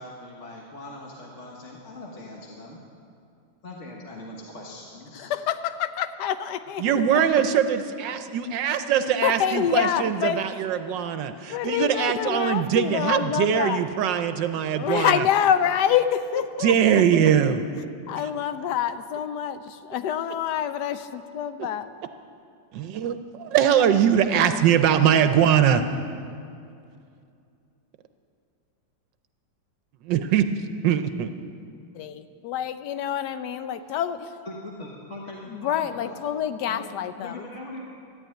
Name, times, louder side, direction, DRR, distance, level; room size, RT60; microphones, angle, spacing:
voice 1, 0.0-2.8 3.6-5.3 34.5-36.3 36.7-37.8, left 2 dB, 40° left, -2 dB, 1.6 m, -41 dB
voice 2, 5.2-6.8 7.1-7.2 9.2-10.4 10.8-11.0 11.5-13.8 14.7-17.3 18.1-21.9 31.9-34.3 35.5-37.4, left 9 dB, 70° left, 11 dB, 1.2 m, -27 dB
voice 3, 6.8-15.3 16.6-17.6 18.1-18.3 22.7-25.8 30.0-30.5 30.8-31.3, right 9 dB, 75° right, 9 dB, 1.3 m, -22 dB
13.5 x 10.0 x 9.0 m, 2.5 s
omnidirectional pair, 2.1 m